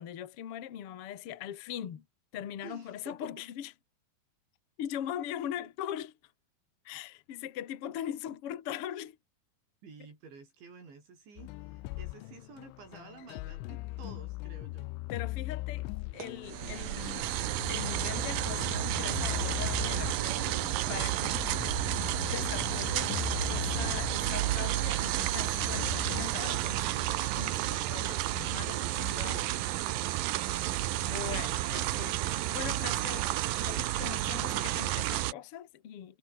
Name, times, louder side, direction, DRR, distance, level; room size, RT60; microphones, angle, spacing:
voice 1, 0.0-2.0 2.3-3.7 4.8-6.3 6.8-9.2 15.1-15.9 16.1-17.3 17.7-20.5 20.9-23.2 23.5-29.5 30.4-30.5 31.0-36.2, left 10 dB, 55° left, 1.5 m, -41 dB
voice 2, 2.6-3.3 5.6-5.7 9.8-14.9 15.7-15.9, right 5 dB, 70° right, 10.0 m, -52 dB
sound 1, 11.4-26.3, left 21 dB, 85° left, 3.2 m, -40 dB
sound 2, 16.2-35.3, right 15 dB, 85° right, 1.9 m, -31 dB
omnidirectional pair, 5.5 m